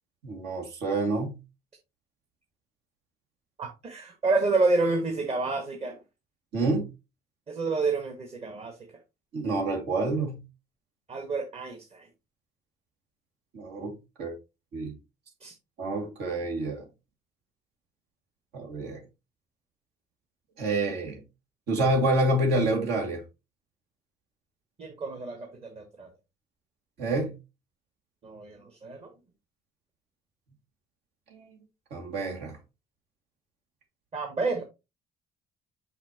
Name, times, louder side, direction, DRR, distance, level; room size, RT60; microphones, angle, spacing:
voice 1, 0.2-1.3 6.5-6.8 9.3-10.4 13.5-14.3 14.7-14.9 15.8-16.8 18.5-19.0 20.6-21.2 21.7-23.2 27.0-27.3 31.3-31.5 31.9-32.5, right 2 dB, 80° right, 2.3 m, -28 dB
voice 2, 3.6-6.0 7.5-8.8 11.1-12.1 15.4-15.5 24.8-26.1 28.2-29.1 34.1-34.6, right 3 dB, 35° right, 1.3 m, -29 dB
5.7 x 5.6 x 2.9 m
cardioid pair, 110°, 17 cm